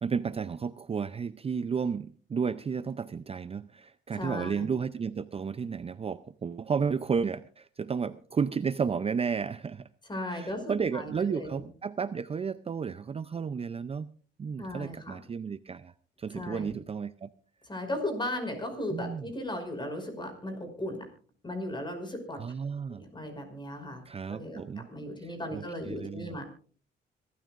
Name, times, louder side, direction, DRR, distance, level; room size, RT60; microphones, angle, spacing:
voice 1, 0.0-9.9 10.3-14.1 14.4-15.9 16.2-17.3 18.9-19.3 22.4-23.0 24.1-24.9 25.2-26.3, right 6 dB, 30° right, 14 dB, 0.5 m, -32 dB
voice 2, 4.1-4.7 10.1-11.7 14.6-15.2 16.3-16.7 17.6-21.1 21.4-22.4 22.9-24.0 24.3-24.6 24.9-26.4, left 1 dB, 25° left, 6 dB, 5.4 m, -36 dB
25.5 x 12.5 x 2.5 m, 0.41 s
cardioid pair, 90°, 20 cm